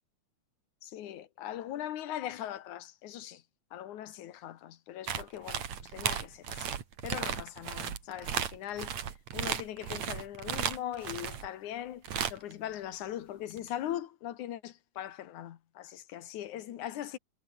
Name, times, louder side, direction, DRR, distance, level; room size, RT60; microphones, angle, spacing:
voice 1, 0.8-3.4 3.7-6.7 7.0-9.0 9.3-12.0 12.3-17.2, left 12 dB, 80° left, 2.8 m, -40 dB
sound 1, 5.1-11.5 12.0-12.5 13.6-13.7, right 8 dB, 65° right, 3.3 m, -35 dB
omnidirectional pair, 3.4 m